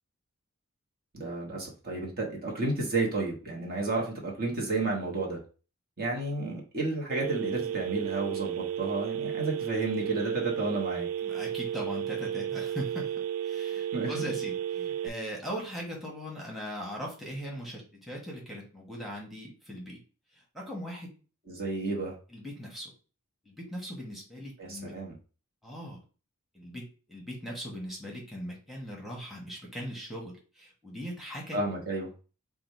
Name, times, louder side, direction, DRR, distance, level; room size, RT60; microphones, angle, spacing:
voice 1, 1.1-5.4 6.0-11.1 13.9-14.3 21.5-22.1 24.6-25.2 31.5-32.1, right 2 dB, 45° right, -1 dB, 1.2 m, -32 dB
Telephone, 7.1-15.1, right 10 dB, 90° right, 0.4 m, -33 dB
voice 2, 11.2-13.1 13.4-20.0 20.5-21.1 22.3-22.9 23.4-24.9 25.6-26.0 26.5-31.6, equal, ahead, -3 dB, 1.3 m, -39 dB
4.9 x 2.4 x 4.5 m, 0.36 s
head